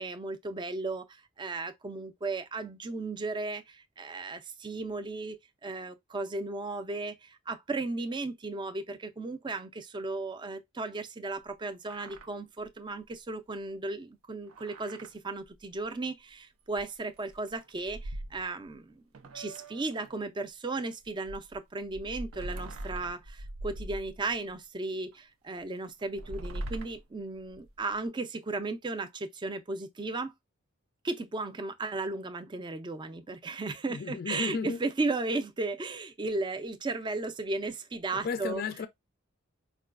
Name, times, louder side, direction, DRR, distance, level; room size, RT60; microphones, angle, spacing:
voice 1, 0.0-19.0 19.3-30.3 31.0-38.6, right 3 dB, 20° right, 0.4 m, -35 dB
sound 1, 11.5-11.6 11.7-12.3 12.6-12.7 13.0-13.1 14.5-15.1 15.5-15.6 16.7-16.8 17.2-18.7 19.1-20.2 21.0-24.5 25.1-25.2 26.0-27.9, right 1 dB, 90° right, 0.5 m, -42 dB
voice 2, 33.9-34.8 38.1-38.9, left 5 dB, 45° left, 0.4 m, -34 dB
4.7 x 2.2 x 2.3 m
head